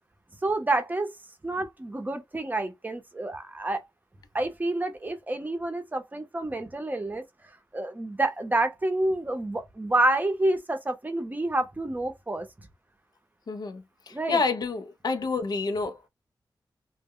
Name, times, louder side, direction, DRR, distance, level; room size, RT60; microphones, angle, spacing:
voice 1, 0.4-1.1 1.4-3.8 4.3-7.2 7.7-12.7 14.1-14.4, right 2 dB, 20° right, 0.6 m, -28 dB
voice 2, 13.5-16.1, left 4 dB, 55° left, 0.4 m, -29 dB
2.1 x 2.0 x 3.5 m
wide cardioid pair, 85°, 8 cm